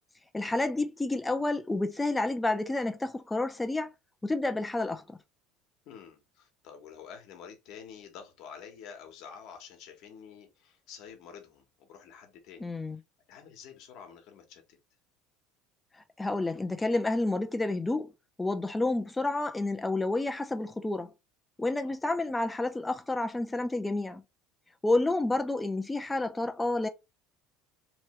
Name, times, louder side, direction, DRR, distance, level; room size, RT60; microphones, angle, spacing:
voice 1, 0.3-3.9 4.2-5.2 12.6-13.0 16.2-18.1 18.4-21.1 21.6-24.2 24.8-26.9, left 2 dB, 10° left, 0.6 m, -29 dB
voice 2, 5.8-12.7 13.3-14.8 21.8-22.0, left 7 dB, 65° left, 1.1 m, -49 dB
3.1 x 2.6 x 3.1 m
supercardioid pair, 110°, 0 cm